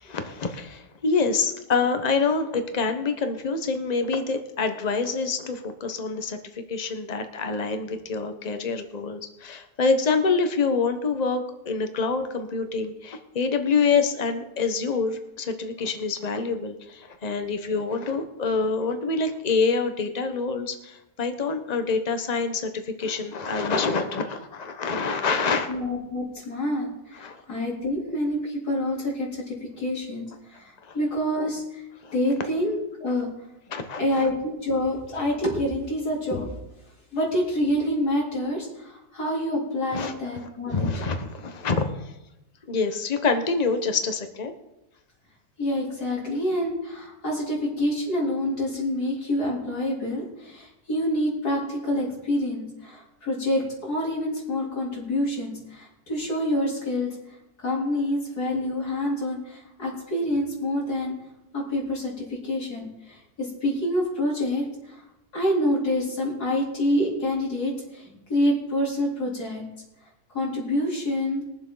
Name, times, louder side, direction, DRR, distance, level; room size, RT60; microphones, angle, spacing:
voice 1, 0.0-25.7 27.2-27.4 30.8-31.0 32.0-32.1 33.7-34.3 39.9-42.1 42.7-44.5, left 4 dB, 30° left, 7 dB, 1.1 m, -26 dB
voice 2, 25.7-31.9 32.1-33.3 34.0-36.5 37.1-40.9 45.6-57.1 57.6-61.1 61.5-65.0 65.3-69.6 70.3-71.4, left 1 dB, 80° left, -3 dB, 3.9 m, -27 dB
22.0 x 7.4 x 3.9 m, 0.93 s
omnidirectional pair, 1.6 m